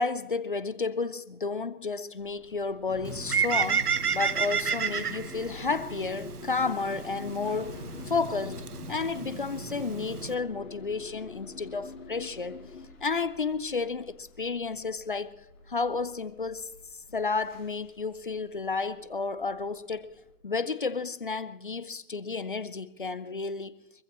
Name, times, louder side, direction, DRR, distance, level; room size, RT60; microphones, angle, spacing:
voice 1, 0.0-12.7 13.0-15.4 15.7-16.7 17.1-20.2 20.4-23.7, left 4 dB, 35° left, 0.5 m, -32 dB
sound 1, 2.2-20.3, left 2 dB, 10° left, 1.4 m, -55 dB
sound 2, 2.9-12.9, left 3 dB, 50° left, 3.8 m, -44 dB
Bird, 3.0-10.3, right 6 dB, 80° right, 0.9 m, -32 dB
24.0 x 15.0 x 3.0 m
figure-of-eight pair, 150°, 45 cm